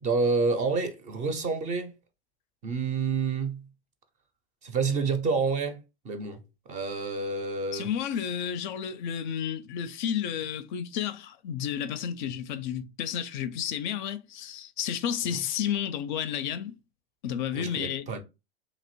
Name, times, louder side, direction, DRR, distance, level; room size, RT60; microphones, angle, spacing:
voice 1, 0.0-1.9 2.6-3.6 4.6-5.8 6.0-6.4 6.7-7.9 15.3-15.4 17.5-18.2, right 4 dB, 25° right, 0.5 m, -28 dB
voice 2, 7.7-16.7 17.2-18.0, left 9 dB, 50° left, 0.4 m, -31 dB
2.8 x 2.5 x 3.0 m
hypercardioid pair, 110°, 32 cm